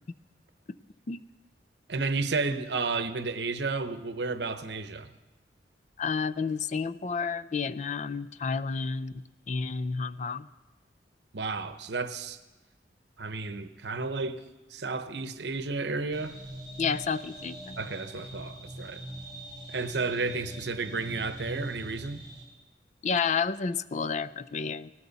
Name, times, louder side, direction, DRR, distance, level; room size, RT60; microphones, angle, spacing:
voice 1, 1.9-5.1 11.3-12.4 13.2-14.4 14.7-16.4 17.8-19.0 19.7-22.2, right 3 dB, 70° right, 0.9 m, -32 dB
voice 2, 6.0-10.5 16.8-17.8 23.0-24.9, left 5 dB, 40° left, 0.4 m, -30 dB
sound 1, 16.1-22.4, right 1 dB, 25° right, 2.8 m, -42 dB
19.5 x 17.5 x 4.1 m
head